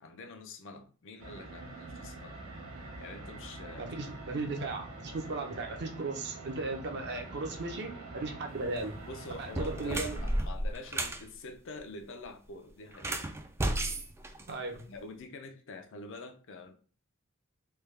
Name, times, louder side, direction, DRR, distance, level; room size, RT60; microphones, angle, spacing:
voice 1, 0.0-2.4 3.0-3.9 9.1-13.3 14.9-16.7, left 3 dB, 60° left, 0.5 m, -46 dB
sound 1, 1.2-10.4, right 2 dB, 85° right, 1.2 m, -45 dB
voice 2, 3.8-9.0 9.4-10.2 14.5-14.8, right 3 dB, 55° right, 0.7 m, -36 dB
sound 2, 8.6-8.9 9.4-11.2 12.9-15.0, right 1 dB, 10° right, 0.3 m, -33 dB
3.4 x 2.3 x 3.2 m
head